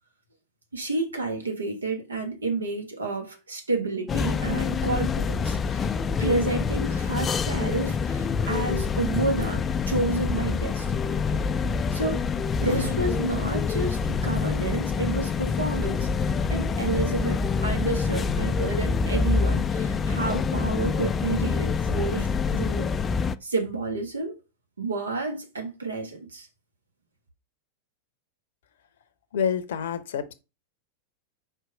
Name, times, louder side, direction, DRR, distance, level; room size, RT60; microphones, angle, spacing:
voice 1, 0.7-11.0 11.9-12.2 12.6-22.9 23.4-24.3 24.8-26.5, right 3 dB, 75° right, 1.4 m, -30 dB
sound 1, 4.1-23.4, left 5 dB, 20° left, 0.4 m, -26 dB
voice 2, 29.3-30.3, left 7 dB, 60° left, 0.7 m, -27 dB
4.7 x 4.5 x 5.0 m
figure-of-eight pair, 90°, 0 cm